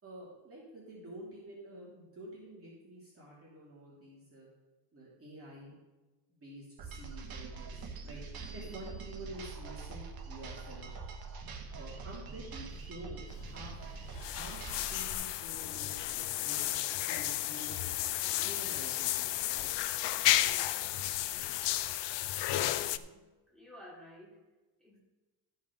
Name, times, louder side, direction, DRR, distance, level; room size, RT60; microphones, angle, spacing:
voice 1, 0.0-4.5 4.9-5.7 6.3-8.2 8.5-11.0 11.7-16.0 16.4-17.9 18.4-19.7, right 1 dB, 30° right, -6 dB, 2.8 m, -49 dB
sound 1, 6.8-15.1, right 4 dB, 55° right, 1.3 m, -44 dB
sound 2, 13.3-23.0, left 14 dB, 70° left, 0.6 m, -33 dB
voice 2, 22.6-23.2 23.5-24.4 24.8-25.0, left 1 dB, ahead, -8 dB, 4.1 m, -53 dB
13.5 x 5.7 x 5.2 m, 1.2 s
cardioid pair, 140°, 44 cm